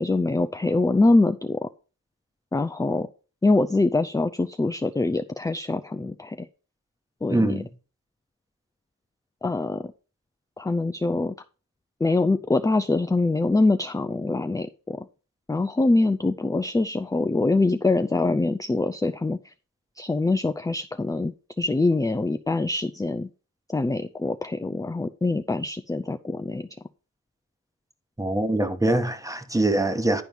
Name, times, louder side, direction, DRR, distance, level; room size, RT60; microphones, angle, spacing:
voice 1, 0.0-1.7 2.5-3.1 3.4-6.5 7.2-7.6 9.4-9.9 10.6-11.4 12.0-15.1 15.5-19.4 20.0-23.3 23.7-26.7, left 2 dB, 10° left, 0.4 m, -24 dB
voice 2, 7.3-7.7 28.2-30.2, right 1 dB, 10° right, 1.1 m, -23 dB
10.5 x 4.5 x 5.3 m
cardioid pair, 65°, 35 cm